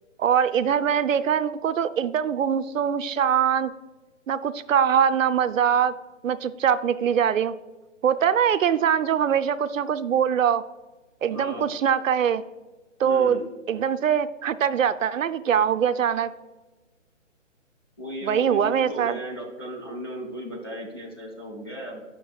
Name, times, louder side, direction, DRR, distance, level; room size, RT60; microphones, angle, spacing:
voice 1, 0.2-3.7 4.3-6.0 6.2-7.5 8.0-10.6 11.2-12.4 13.0-13.4 13.7-16.3 18.2-19.1, right 8 dB, 85° right, 11 dB, 0.5 m, -22 dB
voice 2, 11.3-11.7 13.0-13.4 18.0-22.0, equal, 20° left, -6 dB, 0.5 m, -35 dB
8.5 x 5.9 x 2.3 m, 1.2 s
hypercardioid pair, 155°, 39 cm